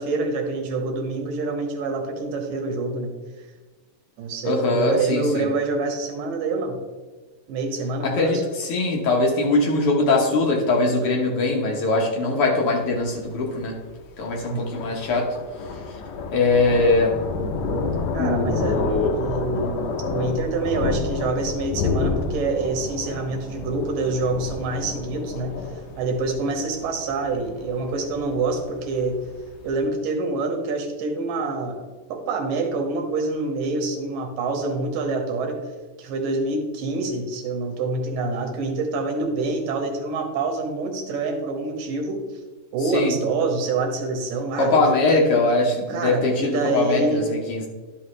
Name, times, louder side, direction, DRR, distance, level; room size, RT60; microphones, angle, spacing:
voice 1, 0.0-3.1 4.2-6.8 7.5-8.4 14.5-15.0 18.1-18.8 19.1-25.5 26.0-29.2 29.6-31.8 32.1-35.6 36.0-42.2 42.7-45.2 45.9-47.3, right 3 dB, 90° right, 3 dB, 2.8 m, -26 dB
voice 2, 4.4-5.4 8.0-13.8 14.2-15.3 16.3-17.2 18.2-19.1 42.9-43.1 44.6-47.7, left 2 dB, 65° left, -1 dB, 1.4 m, -21 dB
Thunder, 12.9-29.8, left 4 dB, 85° left, 1.4 m, -30 dB
11.5 x 5.7 x 3.1 m, 1.3 s
omnidirectional pair, 3.8 m